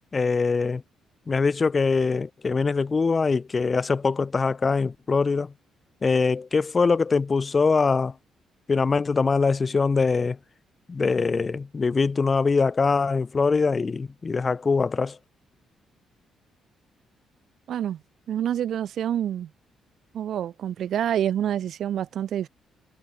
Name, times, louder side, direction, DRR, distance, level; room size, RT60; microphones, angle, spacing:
voice 1, 0.1-0.8 1.3-5.5 6.0-8.2 8.7-10.4 10.9-15.2, left 4 dB, 30° left, 5.3 m, -23 dB
voice 2, 17.7-18.0 18.3-19.5 20.1-22.5, right 10 dB, 70° right, 2.8 m, -27 dB
cardioid pair, 90°, 0 cm